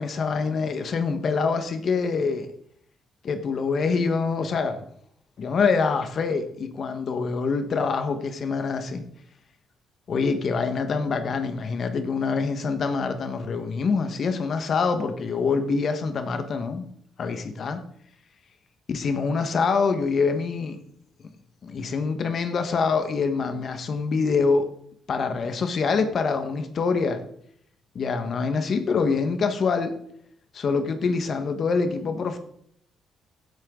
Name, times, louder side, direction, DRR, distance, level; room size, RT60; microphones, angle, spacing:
voice 1, 0.0-2.5 3.2-4.8 5.4-9.0 10.1-16.9 17.2-17.8 18.9-20.8 21.6-24.7 25.1-27.2 27.9-29.9 30.5-32.4, left 4 dB, 55° left, 8 dB, 1.5 m, -25 dB
16.5 x 8.1 x 3.9 m, 0.67 s
cardioid pair, 90°, 0 cm